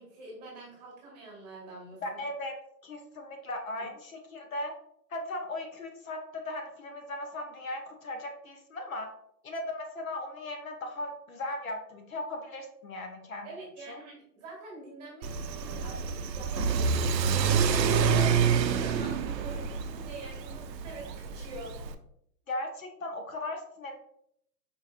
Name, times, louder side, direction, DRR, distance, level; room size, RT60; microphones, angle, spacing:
voice 1, 0.0-2.2 3.8-3.9 13.4-21.8, right 2 dB, 25° right, -4 dB, 1.2 m, -46 dB
voice 2, 2.0-2.6 2.8-4.7 5.1-9.1 9.4-13.5 13.9-14.0 22.5-23.9, left 1 dB, 55° left, 4 dB, 0.6 m, -37 dB
Car / Accelerating revving vroom, 15.2-21.9, right 6 dB, 80° right, 0.6 m, -27 dB
4.6 x 2.6 x 2.4 m, 0.71 s
hypercardioid pair, 170°, 49 cm